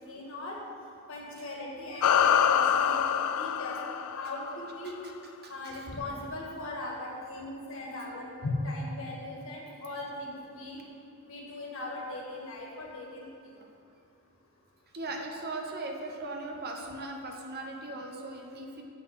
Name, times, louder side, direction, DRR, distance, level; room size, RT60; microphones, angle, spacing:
voice 1, 0.1-0.6 1.1-3.0 3.3-4.9 5.5-10.8 11.3-13.2, left 2 dB, 65° left, -2 dB, 1.7 m, -38 dB
sound 1, 2.0-4.8, left 8 dB, 80° left, 0.4 m, -25 dB
voice 2, 5.4-5.9 13.6-13.7 14.9-18.8, right 2 dB, 45° right, 2 dB, 1.0 m, -39 dB
8.1 x 5.8 x 6.4 m, 2.5 s
head